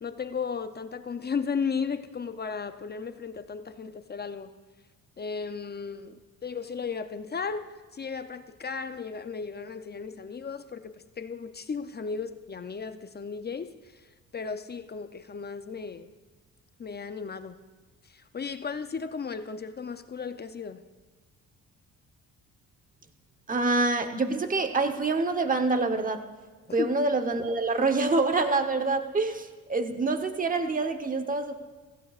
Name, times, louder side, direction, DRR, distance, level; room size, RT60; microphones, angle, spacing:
voice 1, 0.0-4.5 5.2-14.1 14.3-16.1 16.8-17.6 18.1-20.8 26.8-26.9, left 5 dB, 30° left, 10 dB, 0.5 m, -35 dB
voice 2, 23.5-26.3 26.7-31.5, right 3 dB, 25° right, 7 dB, 1.0 m, -26 dB
16.0 x 15.0 x 2.4 m, 1.3 s
cardioid pair, 105°, 35 cm